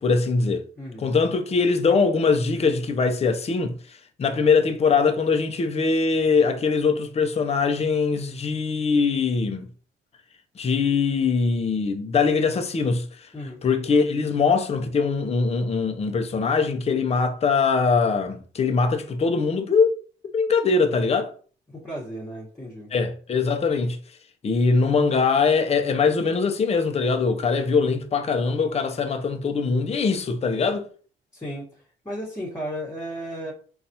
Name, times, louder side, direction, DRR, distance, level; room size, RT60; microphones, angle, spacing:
voice 1, 0.0-0.6 1.0-3.7 4.2-9.7 10.6-13.1 13.6-19.9 20.3-21.3 22.9-24.0 24.4-30.9, left 4 dB, 30° left, 0.6 m, -22 dB
voice 2, 0.8-1.1 13.3-13.6 21.7-22.9 31.3-33.5, equal, 15° left, 1.2 m, -34 dB
3.9 x 2.4 x 2.7 m
cardioid pair, 90°, 20 cm